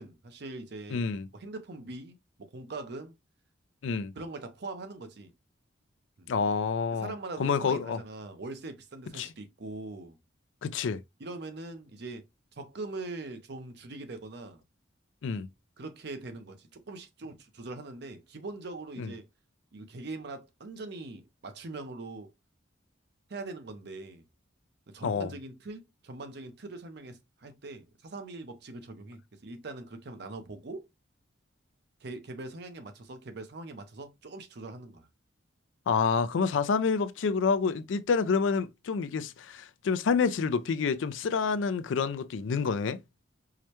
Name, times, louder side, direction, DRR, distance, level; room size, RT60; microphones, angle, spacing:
voice 1, 0.0-1.1 1.3-3.1 4.2-5.3 6.2-6.3 6.9-10.2 11.2-12.3 12.5-14.6 15.8-19.3 19.7-22.3 23.3-24.2 24.9-30.8 32.0-35.1, right 2 dB, 55° right, 0.6 m, -42 dB
voice 2, 0.9-1.3 3.8-4.1 6.3-7.1 7.4-8.0 9.2-9.3 10.6-11.0 15.2-15.5 19.0-19.1 25.0-25.3 35.9-43.0, left 5 dB, 75° left, 0.4 m, -28 dB
4.7 x 2.2 x 2.8 m
head